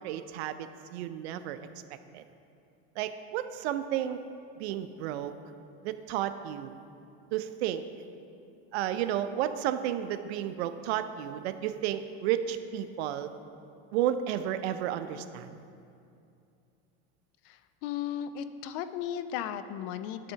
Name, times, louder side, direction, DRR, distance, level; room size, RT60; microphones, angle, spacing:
voice 1, 0.0-1.6 2.1-2.2 3.0-4.2 4.6-5.3 5.8-6.8 7.3-7.8 8.7-13.3 13.9-15.5, right 11 dB, 85° right, 11 dB, 0.5 m, -32 dB
voice 2, 17.4-20.3, left 9 dB, 60° left, 11 dB, 0.5 m, -36 dB
10.0 x 3.6 x 5.6 m, 2.6 s
supercardioid pair, 140°, 31 cm